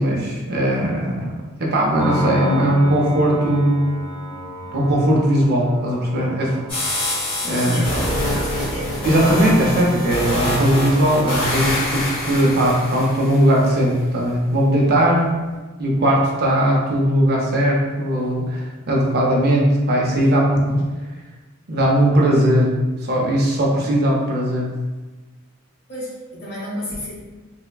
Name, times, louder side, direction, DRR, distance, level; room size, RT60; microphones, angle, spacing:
voice 1, 0.0-1.3 1.6-3.8 4.7-6.9 7.4-7.8 9.0-15.3 15.8-20.8 21.7-22.7 23.0-24.7, right 1 dB, 50° right, -2 dB, 0.5 m, -18 dB
Piano, 2.0-8.7, equal, 65° left, 1.3 m, -32 dB
sound 1, 6.7-13.7, left 1 dB, 25° left, 1.4 m, -25 dB
voice 2, 7.5-9.1 25.9-27.1, left 1 dB, 50° left, -8 dB, 1.1 m, -33 dB
3.2 x 2.1 x 2.2 m, 1.2 s
head